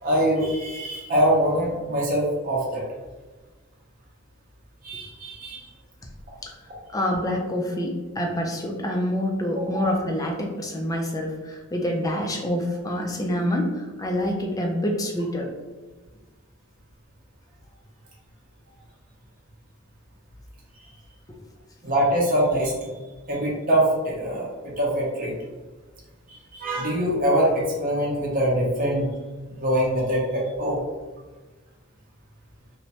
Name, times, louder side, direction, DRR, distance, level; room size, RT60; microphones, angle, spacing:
voice 1, 0.0-2.8 4.8-5.7 9.6-9.7 21.8-22.9 23.3-25.3 26.3-29.1 29.5-30.8, right 1 dB, 40° right, -4 dB, 0.6 m, -23 dB
voice 2, 6.9-15.5, left 1 dB, 15° left, 1 dB, 0.4 m, -26 dB
3.0 x 2.1 x 2.8 m, 1.3 s
head